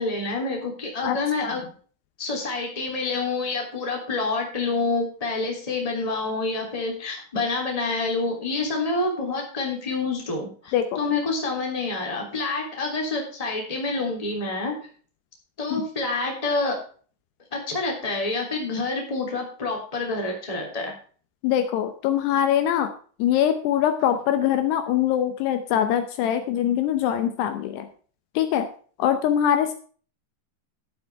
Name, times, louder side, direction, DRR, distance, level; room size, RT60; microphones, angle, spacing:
voice 1, 0.0-1.6 2.2-14.7 15.6-16.8 17.5-20.9, left 3 dB, 10° left, 0 dB, 2.4 m, -27 dB
voice 2, 1.0-1.6 10.7-11.0 15.7-15.8 21.4-22.9 23.2-27.9 28.4-28.7 29.0-29.7, left 10 dB, 75° left, 8 dB, 2.8 m, -23 dB
12.0 x 8.2 x 4.5 m, 0.42 s
omnidirectional pair, 5.1 m